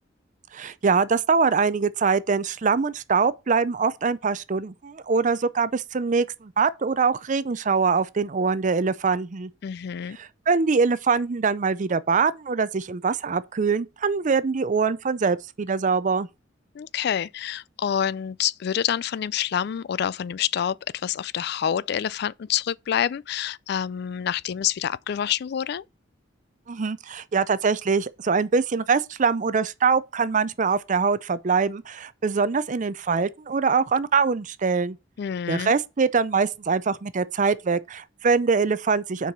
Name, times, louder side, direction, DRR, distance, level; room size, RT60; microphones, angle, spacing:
voice 1, 0.5-9.5 10.2-16.3 26.7-35.0 35.5-39.3, right 5 dB, 40° right, 0.5 m, -23 dB
voice 2, 9.6-10.2 16.7-25.8 35.2-35.7, left 9 dB, 55° left, 0.3 m, -27 dB
6.7 x 4.7 x 5.9 m
head